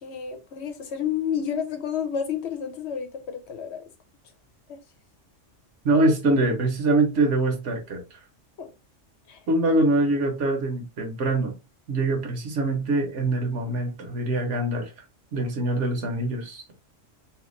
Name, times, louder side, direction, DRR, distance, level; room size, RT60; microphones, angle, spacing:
voice 1, 0.0-3.8 4.7-4.8 8.6-8.7 9.3-9.4, left 8 dB, 65° left, 0.9 m, -30 dB
voice 2, 5.8-8.0 9.5-11.5 11.9-14.9 15.3-16.7, right 2 dB, 70° right, 1.3 m, -24 dB
3.1 x 2.8 x 3.1 m
omnidirectional pair, 1.3 m